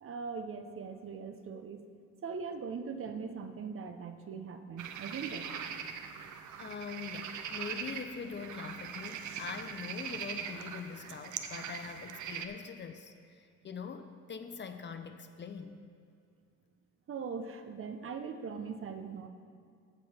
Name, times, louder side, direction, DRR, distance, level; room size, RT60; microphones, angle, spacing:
voice 1, 0.0-1.8 2.2-5.6 17.1-19.3, right 5 dB, 45° right, 7 dB, 0.8 m, -40 dB
sound 1, 4.8-12.5, right 7 dB, 75° right, 0.7 m, -41 dB
voice 2, 6.6-13.1 13.6-15.8, left 6 dB, 35° left, 8 dB, 0.7 m, -43 dB
15.0 x 5.7 x 4.3 m, 2.3 s
cardioid pair, 90°, 30 cm